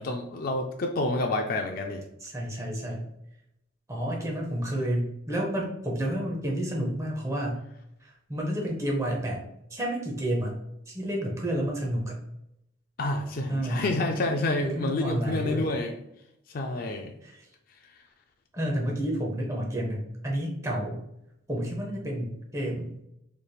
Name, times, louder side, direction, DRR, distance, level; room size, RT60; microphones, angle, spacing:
voice 1, 0.0-2.0 13.0-16.0 16.5-17.1, left 2 dB, 45° left, 3 dB, 0.3 m, -28 dB
voice 2, 2.2-3.0 3.9-7.6 8.3-9.4 9.7-10.5 10.9-12.2 13.5-13.8 14.6-15.7 17.2-17.5 18.5-21.0 21.5-22.9, right 1 dB, 15° right, -2 dB, 0.7 m, -30 dB
4.0 x 3.3 x 2.3 m, 0.83 s
head